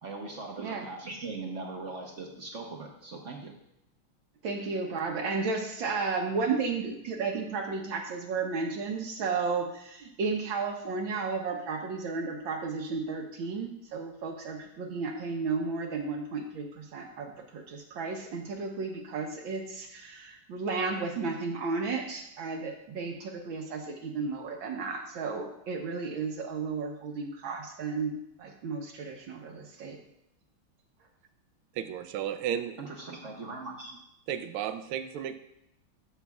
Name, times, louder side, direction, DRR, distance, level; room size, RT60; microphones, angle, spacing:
voice 1, 0.0-3.5 32.8-34.0, right 3 dB, 50° right, 1 dB, 1.0 m, -40 dB
voice 2, 4.4-30.0, right 4 dB, 70° right, 2 dB, 1.6 m, -33 dB
voice 3, 31.7-32.8 34.3-35.3, right 9 dB, 85° right, 10 dB, 1.5 m, -33 dB
12.5 x 7.1 x 2.4 m, 0.80 s
omnidirectional pair, 2.3 m